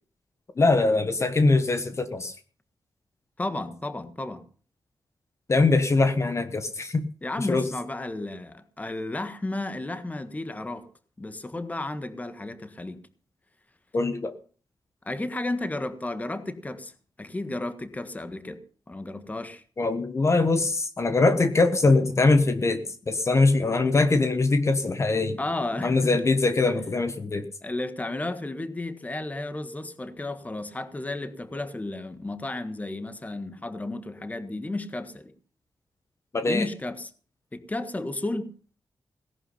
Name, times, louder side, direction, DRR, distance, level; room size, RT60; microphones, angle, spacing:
voice 1, 0.6-2.3 5.5-7.1 7.4-7.6 13.9-14.3 19.8-25.4 25.8-27.4 36.3-36.7, left 3 dB, 35° left, 9 dB, 1.4 m, -22 dB
voice 2, 3.4-4.4 7.2-10.9 11.2-13.0 15.0-16.9 17.2-18.6 18.9-19.6 25.4-26.4 27.6-35.3 36.4-37.1 37.5-38.5, left 2 dB, 20° left, 11 dB, 1.5 m, -33 dB
18.0 x 11.0 x 5.8 m, 0.42 s
wide cardioid pair, 130°, 8 cm